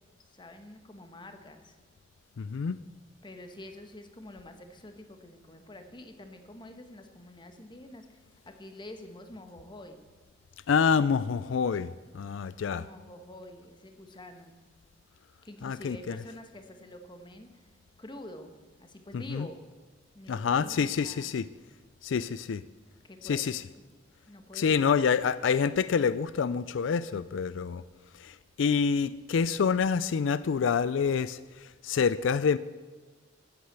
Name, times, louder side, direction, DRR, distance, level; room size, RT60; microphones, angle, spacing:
voice 1, 0.3-1.8 3.2-10.0 12.6-14.6 15.4-17.7 18.0-19.6 20.1-21.3 23.0-23.9 24.3-25.3, left 1 dB, 25° left, 7 dB, 1.3 m, -47 dB
voice 2, 2.4-2.8 10.7-12.8 15.6-16.2 19.1-19.5 20.3-21.5 22.0-22.6 23.2-23.6 24.5-27.8 28.2-32.6, left 6 dB, 85° left, 17 dB, 0.4 m, -27 dB
13.5 x 8.3 x 8.1 m, 1.3 s
head